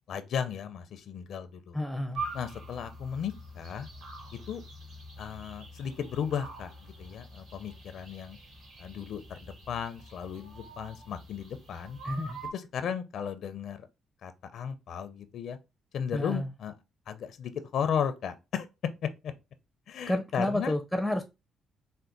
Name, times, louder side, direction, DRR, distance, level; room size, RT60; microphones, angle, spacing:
voice 1, 0.1-1.8 2.3-3.9 4.3-4.6 5.2-8.4 8.8-12.0 12.5-13.9 14.2-15.6 15.9-16.7 17.1-18.7 19.0-19.3 19.9-20.7, left 8 dB, 70° left, 0.5 m, -35 dB
voice 2, 1.7-2.2 12.0-12.4 16.1-16.5 20.1-21.2, left 1 dB, ahead, 0.6 m, -30 dB
sound 1, 2.1-12.5, right 2 dB, 70° right, 2.3 m, -44 dB
4.4 x 2.2 x 3.8 m
cardioid pair, 90°, 0 cm